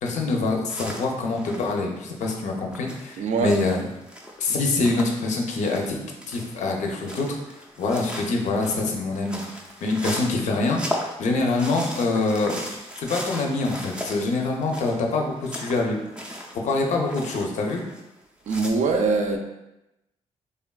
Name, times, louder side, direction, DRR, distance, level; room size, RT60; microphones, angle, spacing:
voice 1, 0.0-3.8 4.4-6.0 6.3-7.4 7.8-9.4 9.8-10.8 11.2-12.7 13.0-16.0 16.5-17.8, left 3 dB, 75° left, 1 dB, 0.5 m, -25 dB
sound 1, 0.7-5.9 6.2-18.2 18.4-18.7, equal, 5° right, 0.4 m, -37 dB
voice 2, 3.2-3.5 18.5-19.4, right 4 dB, 70° right, 4 dB, 0.4 m, -22 dB
3.3 x 2.2 x 2.3 m, 0.93 s
cardioid pair, 105°, 12 cm